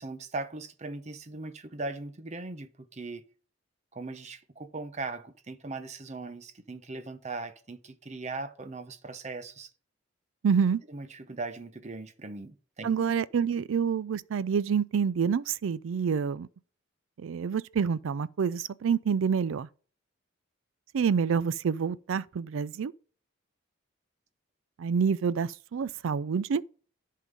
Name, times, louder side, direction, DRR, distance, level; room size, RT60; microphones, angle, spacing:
voice 1, 0.0-3.2 3.9-9.7 10.9-13.2 13.5-13.6, right 3 dB, 35° right, 0.7 m, -39 dB
voice 2, 10.4-10.8 12.8-16.5 17.2-19.7 20.9-22.9 24.8-26.6, right 6 dB, 75° right, 0.4 m, -27 dB
11.0 x 3.8 x 5.2 m
head